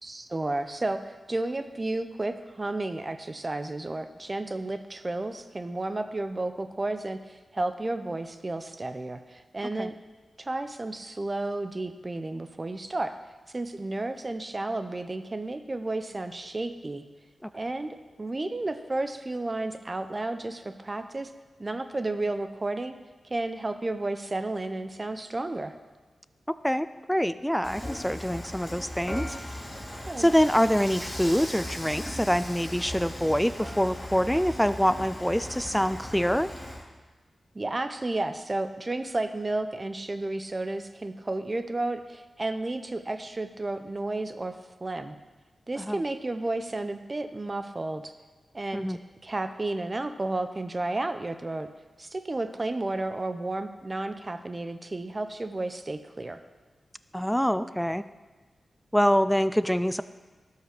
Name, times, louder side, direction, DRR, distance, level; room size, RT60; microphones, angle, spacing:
voice 1, 0.0-9.9 10.4-13.1 13.5-17.0 17.5-21.3 21.6-22.9 23.2-25.7 30.1-30.3 37.5-44.6 44.8-45.2 45.7-48.1 48.5-51.7 52.0-56.4, right 2 dB, 35° right, 9 dB, 0.7 m, -32 dB
voice 2, 26.6-29.4 30.2-36.5 45.8-46.0 48.7-49.0 57.1-58.0 58.9-60.0, equal, 5° left, 13 dB, 0.4 m, -25 dB
Dishes pots and pans / Frying (food), 27.6-36.8, left 1 dB, 25° left, 3.4 m, -38 dB
12.5 x 5.7 x 6.1 m, 1.3 s
cardioid pair, 45°, 0 cm